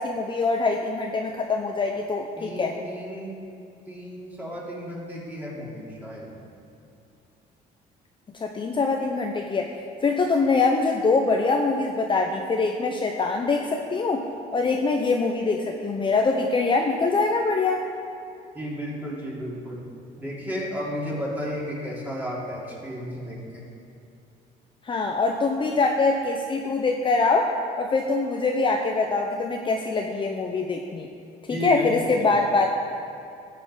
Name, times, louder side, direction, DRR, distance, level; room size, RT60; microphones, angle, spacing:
voice 1, 0.0-2.8 8.3-14.3 14.5-17.9 24.8-27.5 27.8-31.1 31.4-32.7, left 3 dB, 30° left, 2 dB, 0.8 m, -24 dB
voice 2, 2.4-3.6 3.9-6.3 18.5-19.8 20.2-23.6 31.5-31.9 32.2-32.3, left 1 dB, 10° right, -5 dB, 3.4 m, -33 dB
13.5 x 7.9 x 5.6 m, 2.6 s
cardioid pair, 110°, 17 cm